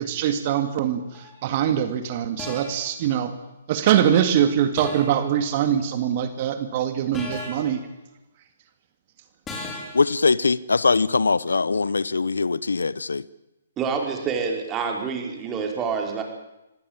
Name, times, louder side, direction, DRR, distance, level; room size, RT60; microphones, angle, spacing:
voice 1, 0.0-3.3 3.7-7.8, right 10 dB, 40° right, 2.1 m, -23 dB
sound 1, 1.1-1.4 2.4-2.9 4.8-5.3 7.1-7.8 9.5-10.1, left 2 dB, 15° left, 5.0 m, -35 dB
voice 2, 9.9-13.2, left 4 dB, 80° left, 0.8 m, -22 dB
voice 3, 13.8-16.2, right 5 dB, 20° right, 4.7 m, -27 dB
25.0 x 17.0 x 8.9 m
figure-of-eight pair, 135°, 0 cm